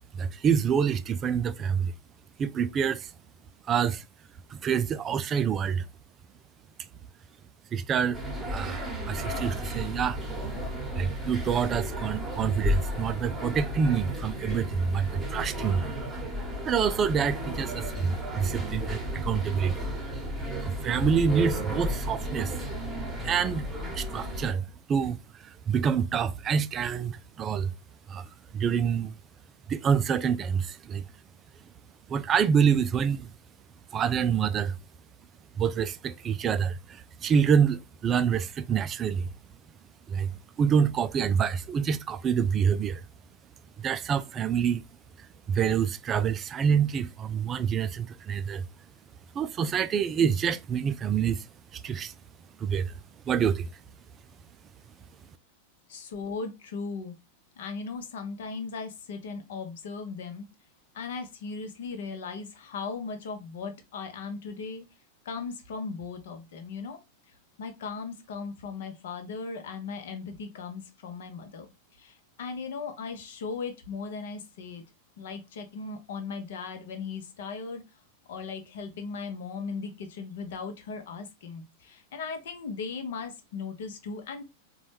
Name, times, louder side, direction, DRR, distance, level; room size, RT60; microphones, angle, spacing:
voice 1, 0.1-1.9 2.4-3.1 3.7-4.0 4.5-5.8 7.7-8.2 8.5-10.2 10.9-15.9 16.7-19.9 20.6-22.5 23.2-23.7 23.9-27.7 28.1-28.3 28.5-29.2 29.7-31.0 32.1-33.3 33.9-34.8 35.6-39.3 40.1-40.3 40.6-43.0 43.8-44.8 45.5-48.6 49.3-51.5 51.7-52.1 52.6-52.9 53.3-53.7, right 7 dB, 25° right, 0.3 m, -27 dB
sound 1, 8.1-24.5, equal, 10° right, 1.1 m, -33 dB
voice 2, 55.9-57.2 57.6-60.5 60.9-64.8 65.2-67.0 67.6-71.7 71.9-74.8 75.2-77.8 78.3-84.4, left 4 dB, 55° left, 0.8 m, -37 dB
4.0 x 2.3 x 3.2 m
figure-of-eight pair, 90°, 0 cm